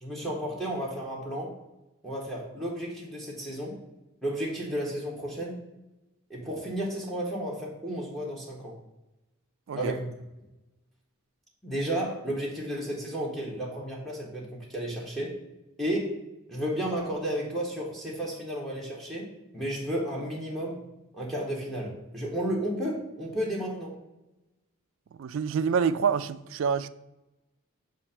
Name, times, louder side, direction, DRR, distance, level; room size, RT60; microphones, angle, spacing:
voice 1, 0.0-1.5 2.0-3.7 4.2-5.6 6.3-8.7 9.7-10.1 11.6-15.3 15.8-16.2 16.5-19.3 19.5-20.8 21.1-23.9, right 1 dB, ahead, 1.0 m, -32 dB
voice 2, 25.2-26.9, right 6 dB, 60° right, 0.3 m, -27 dB
7.2 x 2.5 x 5.4 m
head